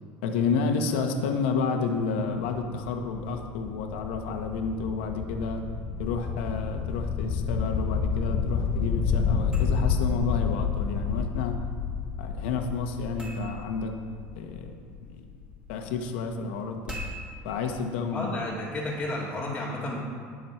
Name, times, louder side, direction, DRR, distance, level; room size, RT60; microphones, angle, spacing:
voice 1, 0.2-5.6 6.0-11.5 12.2-13.9 14.3-14.7 15.0-15.2 15.7-16.8 17.4-18.4, left 5 dB, 85° left, 4 dB, 1.5 m, -30 dB
sound 1, 2.0-15.8, left 6 dB, 45° left, 0.8 m, -30 dB
sound 2, 9.4-19.1, equal, 15° right, 3.7 m, -46 dB
voice 2, 18.1-20.0, left 1 dB, 10° left, -9 dB, 2.1 m, -32 dB
19.5 x 6.6 x 4.5 m, 2.1 s
cardioid pair, 135°, 6 cm